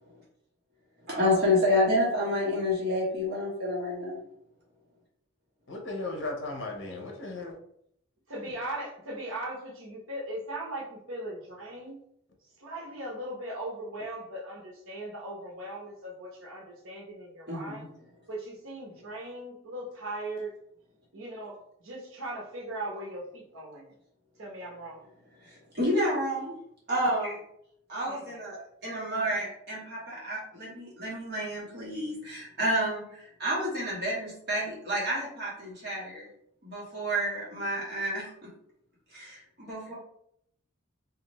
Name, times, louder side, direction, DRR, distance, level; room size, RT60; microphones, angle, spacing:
voice 1, 1.0-4.2 17.5-17.9 25.4-26.5 26.9-27.4 27.9-36.3 36.6-38.5 39.1-39.9, left 1 dB, 50° right, -6 dB, 1.2 m, -29 dB
voice 2, 5.7-7.6, left 2 dB, 60° left, 1 dB, 0.7 m, -36 dB
voice 3, 8.3-12.0 12.6-17.8 18.3-20.5 21.1-23.9 24.4-25.0 28.1-28.2 29.2-29.3, right 1 dB, 80° right, -1 dB, 0.9 m, -39 dB
2.6 x 2.4 x 3.0 m, 0.70 s
head